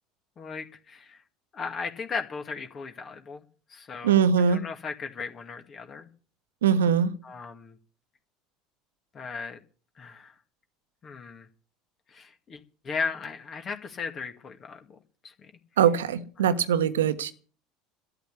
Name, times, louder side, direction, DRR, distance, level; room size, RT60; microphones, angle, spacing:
voice 1, 0.4-1.2 1.5-3.4 3.7-6.1 7.2-7.8 9.1-9.6 10.0-10.3 11.0-11.5 12.1-12.6 12.8-14.8 15.2-15.3 16.4-16.5, left 5 dB, 35° left, 2.1 m, -36 dB
voice 2, 4.0-4.6 6.6-7.1 15.8-17.3, right 8 dB, 75° right, 1.3 m, -22 dB
13.0 x 10.0 x 8.3 m
hypercardioid pair, 70°, 0 cm